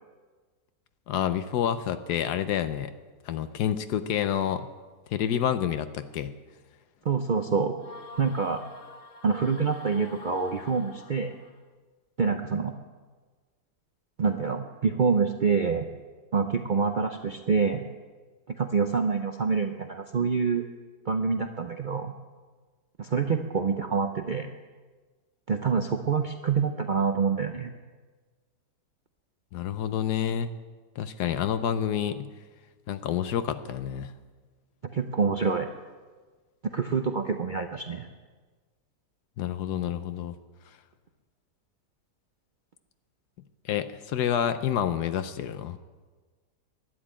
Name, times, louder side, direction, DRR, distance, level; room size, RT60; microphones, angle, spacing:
voice 1, 1.1-2.9 3.3-4.7 5.1-6.3 29.5-30.5 31.0-32.3 32.9-34.1 39.4-40.3 43.6-45.8, left 9 dB, 75° left, 11 dB, 1.2 m, -28 dB
voice 2, 7.0-7.7 8.2-8.6 9.2-11.3 12.2-12.7 14.2-15.9 16.3-17.9 18.5-20.7 21.1-22.1 23.0-24.5 25.5-27.7 34.9-35.7 36.7-38.1, right 5 dB, 75° right, 6 dB, 0.4 m, -26 dB
sound 1, 7.8-11.6, left 4 dB, 45° left, 0.8 m, -46 dB
12.0 x 10.0 x 8.7 m, 1.4 s
omnidirectional pair, 1.8 m